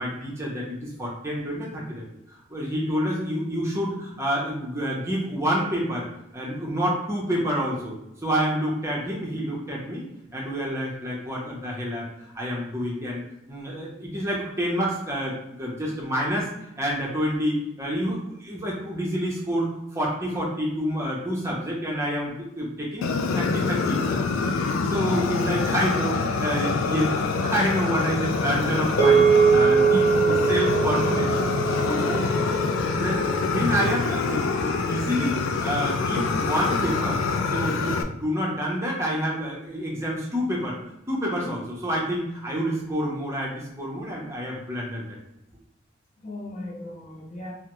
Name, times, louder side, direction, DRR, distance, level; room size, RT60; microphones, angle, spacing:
voice 1, 0.0-6.1 6.3-7.9 8.2-10.1 10.3-12.1 12.4-13.2 13.5-16.5 16.8-24.2 24.5-24.6 24.9-31.3 31.6-31.8 32.9-40.8 41.1-45.0, equal, 15° right, -3 dB, 0.6 m, -28 dB
Fire, 23.0-38.0, left 4 dB, 90° left, 0.3 m, -25 dB
voice 2, 24.9-25.2 29.7-30.5 31.7-32.5 46.2-47.5, left 1 dB, 35° left, -2 dB, 0.6 m, -36 dB
sound 1, 29.0-33.5, right 6 dB, 65° left, 1.0 m, -22 dB
3.4 x 2.0 x 2.9 m, 0.86 s
head